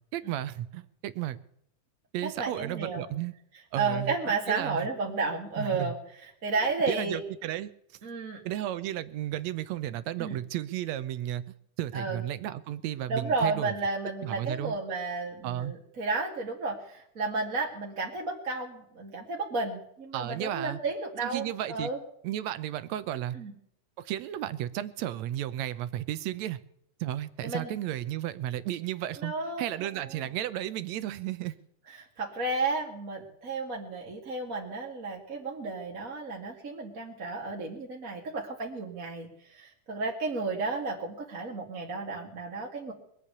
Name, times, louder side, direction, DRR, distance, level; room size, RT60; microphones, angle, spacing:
voice 1, 0.1-1.4 2.1-3.3 3.7-4.2 4.5-4.9 5.6-5.9 6.9-7.7 8.4-11.4 11.8-13.7 14.2-14.8 15.4-15.8 20.1-20.8 21.2-21.9 22.2-23.4 24.0-26.6 27.0-31.6, right 12 dB, 70° right, 14 dB, 1.9 m, -33 dB
voice 2, 2.2-3.1 3.7-5.9 6.4-7.2 8.0-8.4 10.2-10.4 11.9-12.2 13.1-22.0 23.3-23.5 27.4-27.7 29.2-29.6 31.9-42.9, right 3 dB, 30° right, -1 dB, 2.3 m, -32 dB
22.5 x 8.4 x 6.8 m, 0.74 s
omnidirectional pair, 3.5 m